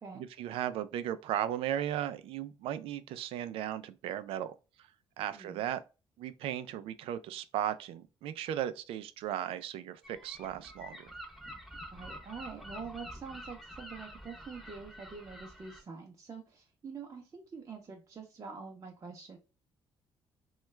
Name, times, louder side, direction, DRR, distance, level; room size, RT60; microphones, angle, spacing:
voice 1, 0.1-4.5 5.2-5.8 6.2-11.1, right 11 dB, 85° right, 0.4 m, -36 dB
voice 2, 5.3-5.6 11.9-19.4, right 5 dB, 35° right, 0.7 m, -46 dB
Gull seagull, 10.0-15.8, equal, ahead, 0.8 m, -48 dB
3.0 x 2.3 x 3.2 m
cardioid pair, 110°, 9 cm